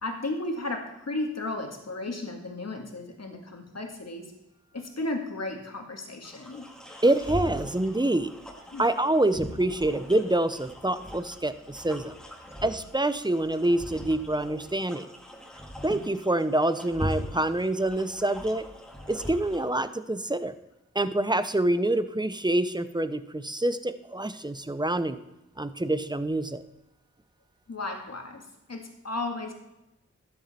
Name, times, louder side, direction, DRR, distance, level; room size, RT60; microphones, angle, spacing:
voice 1, 0.0-4.3 4.7-6.7 8.7-8.8 27.7-29.5, left 2 dB, 60° left, 3 dB, 2.0 m, -34 dB
sound 1, 6.2-19.6, left 1 dB, ahead, 1.8 m, -40 dB
voice 2, 7.0-8.3 8.8-12.1 12.6-15.1 15.8-18.7 19.1-20.5 20.9-25.2 25.6-26.6, right 1 dB, 15° right, 12 dB, 0.8 m, -26 dB
13.0 x 9.4 x 4.4 m, 0.90 s
wide cardioid pair, 55°, 29 cm